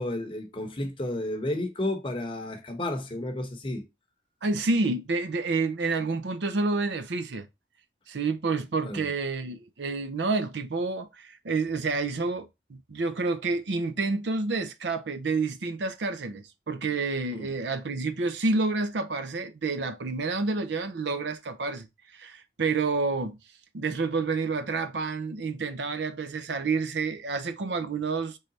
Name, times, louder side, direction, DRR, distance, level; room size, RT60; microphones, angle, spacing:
voice 1, 0.0-3.8 8.8-9.0 17.3-17.5, left 1 dB, 30° left, 0.8 m, -32 dB
voice 2, 4.4-7.5 8.1-21.9 22.1-23.4 23.7-28.4, right 3 dB, 85° right, 0.6 m, -29 dB
3.8 x 3.3 x 4.0 m
head